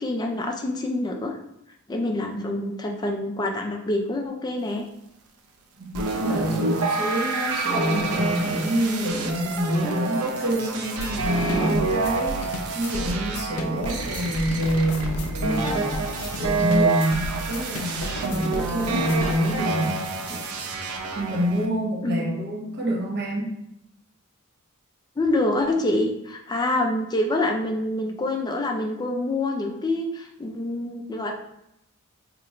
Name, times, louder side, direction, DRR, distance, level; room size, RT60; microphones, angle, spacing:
voice 1, 0.0-1.4 1.9-4.9 22.0-22.2 25.2-31.3, left 1 dB, 20° left, 2 dB, 0.4 m, -26 dB
voice 2, 5.8-16.0 16.4-20.0 20.3-20.4 21.1-23.5, equal, 50° right, -5 dB, 1.1 m, -27 dB
sound 1, 5.9-21.7, right 3 dB, 90° right, 0.6 m, -28 dB
sound 2, 11.0-19.3, left 1 dB, 80° left, 0.4 m, -34 dB
2.9 x 2.5 x 4.3 m, 0.82 s
head